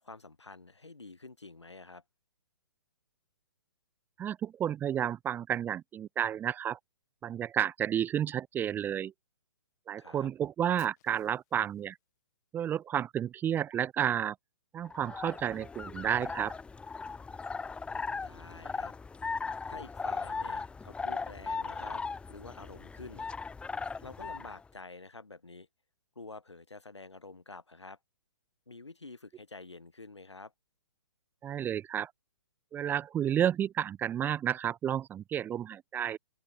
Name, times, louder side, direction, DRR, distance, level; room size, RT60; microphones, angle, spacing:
voice 1, 0.0-2.0 10.0-10.3 18.2-18.9 19.7-22.0 22.3-23.3 23.5-23.6 24.0-25.7 26.2-28.0 28.7-30.5, left 3 dB, 80° left, 3.6 m, -48 dB
voice 2, 4.2-6.8 7.2-9.1 9.9-12.0 12.5-14.4 14.7-16.5 31.4-32.1 32.7-36.2, right 9 dB, 15° right, 0.7 m, -31 dB
Fire, 10.8-12.8, left 18 dB, 40° left, 6.2 m, -62 dB
sound 1, 14.9-24.6, left 4 dB, 5° left, 1.8 m, -38 dB
open air
figure-of-eight pair, 125°, 14 cm